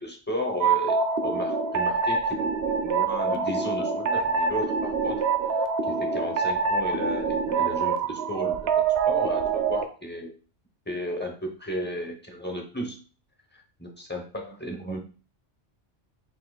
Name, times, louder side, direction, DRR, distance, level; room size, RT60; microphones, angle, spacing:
voice 1, 0.0-8.7 9.1-10.3 10.9-13.0 13.5-15.0, left 1 dB, 10° left, 2 dB, 0.5 m, -34 dB
sound 1, 0.6-9.8, right 5 dB, 65° right, 0.8 m, -25 dB
6.1 x 2.9 x 2.2 m, 0.36 s
omnidirectional pair, 1.2 m